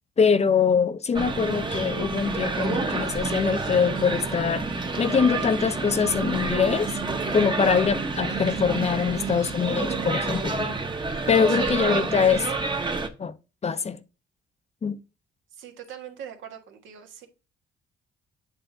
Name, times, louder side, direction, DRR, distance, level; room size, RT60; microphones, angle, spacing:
voice 1, 0.2-4.7 5.0-6.9 7.3-10.8 11.3-12.4 13.2-13.3 13.6-14.0 14.8-15.0, left 6 dB, 35° left, 0.6 m, -23 dB
sound 1, 1.1-13.1, right 3 dB, 25° right, 1.0 m, -28 dB
voice 2, 11.5-12.1 15.5-17.3, right 8 dB, 75° right, 1.4 m, -41 dB
8.2 x 3.3 x 3.8 m
cardioid pair, 90°, 20 cm